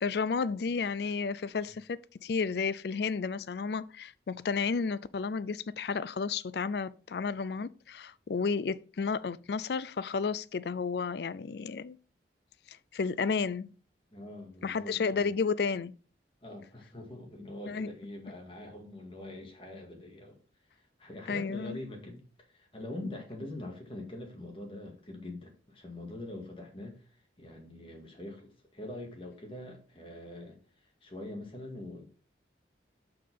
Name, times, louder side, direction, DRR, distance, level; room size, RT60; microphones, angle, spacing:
voice 1, 0.0-12.0 12.7-13.7 14.6-15.9 17.7-17.9 21.3-21.8, left 5 dB, 65° left, 0.4 m, -32 dB
voice 2, 14.1-15.3 16.4-32.0, left 1 dB, 30° left, 2.0 m, -44 dB
6.6 x 5.7 x 5.5 m
head